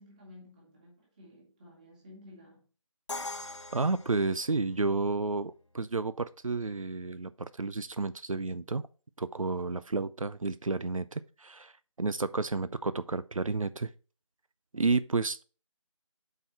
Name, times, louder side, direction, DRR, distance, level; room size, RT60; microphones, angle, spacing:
voice 1, 0.0-2.7, left 1 dB, 15° right, 1.9 m, -53 dB
Crash cymbal, 3.1-5.0, left 2 dB, 60° left, 1.0 m, -41 dB
voice 2, 3.7-8.9 9.2-11.7 12.0-13.9 14.7-15.4, right 3 dB, 90° right, 0.5 m, -31 dB
7.9 x 4.7 x 4.3 m
figure-of-eight pair, 160°, 17 cm